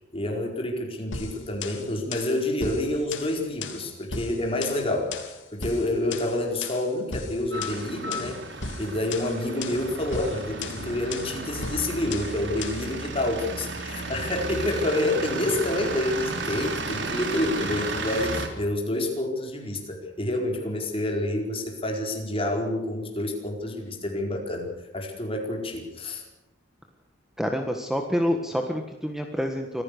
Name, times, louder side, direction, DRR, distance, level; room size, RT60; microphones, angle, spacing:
voice 1, 0.1-8.4 8.8-26.2, left 1 dB, 30° left, 2 dB, 4.6 m, -28 dB
sound 1, 1.1-12.9, left 4 dB, 80° left, 3.0 m, -37 dB
sound 2, 7.5-18.5, right 2 dB, 65° right, 3.3 m, -33 dB
voice 2, 27.4-29.8, equal, ahead, 4 dB, 1.5 m, -27 dB
26.0 x 15.5 x 6.7 m, 1.0 s
head